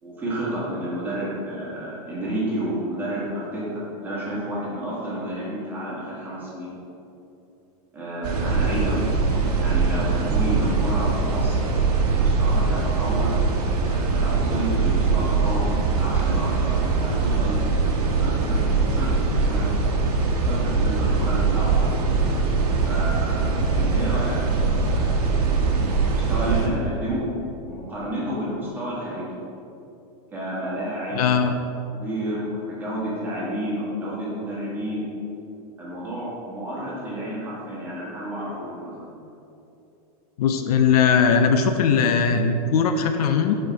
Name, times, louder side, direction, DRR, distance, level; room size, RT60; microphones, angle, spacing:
voice 1, 0.0-6.7 7.9-9.2 9.5-11.7 12.1-13.3 13.9-17.6 18.1-19.7 20.4-21.9 22.8-25.2 25.7-27.2 27.5-29.4 30.3-31.4 31.9-35.1 35.8-39.0, right 1 dB, 10° right, -8 dB, 1.5 m, -30 dB
sound 1, 8.2-26.7, right 4 dB, 80° right, 1.1 m, -22 dB
voice 2, 31.1-31.5 40.4-43.6, left 6 dB, 70° left, 7 dB, 0.5 m, -19 dB
6.3 x 4.5 x 4.6 m, 2.8 s
supercardioid pair, 170°, 20 cm